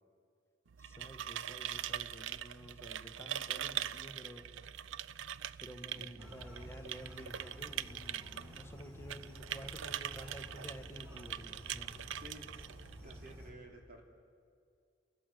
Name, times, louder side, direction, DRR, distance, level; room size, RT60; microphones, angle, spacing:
sound 1, 0.7-13.4, right 10 dB, 85° right, 0.5 m, -43 dB
voice 1, 0.8-4.5 5.6-12.2, equal, 15° left, 4 dB, 1.7 m, -51 dB
voice 2, 5.9-6.3 12.0-12.5 13.0-14.0, equal, 50° right, 1 dB, 3.0 m, -53 dB
sound 2, 6.2-13.5, equal, 15° right, 4.6 m, -52 dB
30.0 x 14.5 x 9.3 m, 2.3 s
head